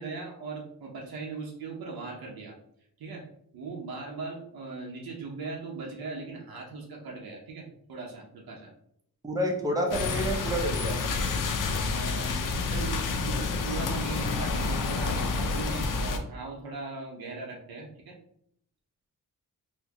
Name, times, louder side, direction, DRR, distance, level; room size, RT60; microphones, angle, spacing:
voice 1, 0.0-2.5 3.0-3.3 3.5-8.7 11.8-18.2, right 3 dB, 85° right, -1 dB, 0.9 m, -39 dB
voice 2, 9.2-11.0, equal, 10° right, 1 dB, 0.7 m, -29 dB
sound 1, 9.9-16.2, left 4 dB, 60° left, 0.5 m, -29 dB
4.3 x 2.2 x 2.9 m, 0.70 s
wide cardioid pair, 105°, 36 cm